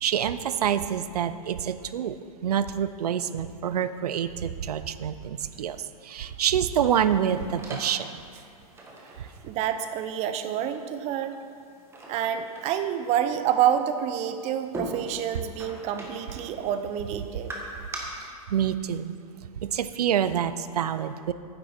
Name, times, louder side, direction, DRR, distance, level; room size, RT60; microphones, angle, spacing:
voice 1, 0.0-2.2 2.4-8.2 18.5-19.1 19.6-21.3, right 9 dB, 85° right, 13 dB, 0.5 m, -27 dB
sound 1, 6.6-18.0, right 2 dB, 15° right, 1.5 m, -43 dB
voice 2, 9.2-11.4 12.1-17.5, right 9 dB, 35° right, 9 dB, 0.6 m, -28 dB
9.7 x 7.7 x 4.3 m, 2.3 s
hypercardioid pair, 120°, 19 cm